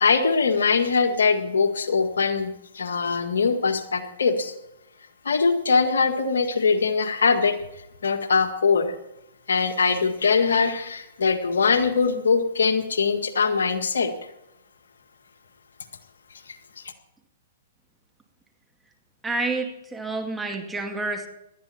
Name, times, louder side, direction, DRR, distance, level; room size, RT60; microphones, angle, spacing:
voice 1, 0.0-2.5 2.7-4.5 5.3-7.6 8.0-8.9 9.5-14.1, left 5 dB, 80° left, 7 dB, 1.7 m, -22 dB
voice 2, 19.2-21.3, right 3 dB, 10° right, 3 dB, 2.3 m, -29 dB
19.0 x 13.0 x 4.3 m, 0.85 s
hypercardioid pair, 125°, 0 cm